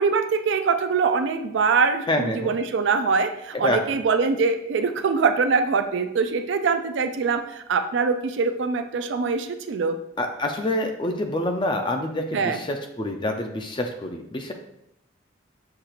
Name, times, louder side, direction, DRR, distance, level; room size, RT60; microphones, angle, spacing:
voice 1, 0.0-10.0 12.3-12.6, right 5 dB, 70° right, 8 dB, 0.4 m, -23 dB
voice 2, 2.1-2.5 3.5-3.8 10.2-14.5, left 1 dB, 25° left, 4 dB, 0.4 m, -27 dB
6.5 x 2.4 x 2.9 m, 0.81 s
head